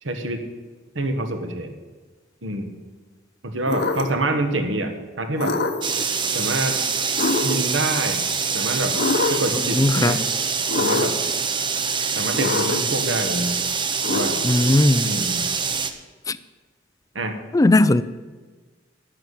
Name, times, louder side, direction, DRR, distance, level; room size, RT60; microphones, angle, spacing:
voice 1, 0.0-0.4 0.9-1.7 2.4-2.7 3.4-5.6 6.3-6.8 7.4-8.3 8.5-9.0 9.3-10.2 10.8-11.2 12.1-13.6 14.1-14.4 15.0-15.5 17.1-17.4, right 2 dB, 65° right, 6 dB, 1.5 m, -26 dB
sound 1, 3.7-4.3 5.4-6.0 7.2-7.8 8.9-9.6 10.7-11.3 12.3-13.0 14.0-14.7, left 3 dB, 55° left, 0.9 m, -25 dB
sound 2, 5.8-15.9, right 5 dB, 25° right, 0.8 m, -25 dB
voice 2, 9.5-10.2 14.4-15.1 16.3-16.4 17.5-18.0, left 2 dB, 15° left, 15 dB, 0.4 m, -18 dB
10.5 x 7.1 x 9.4 m, 1.4 s
head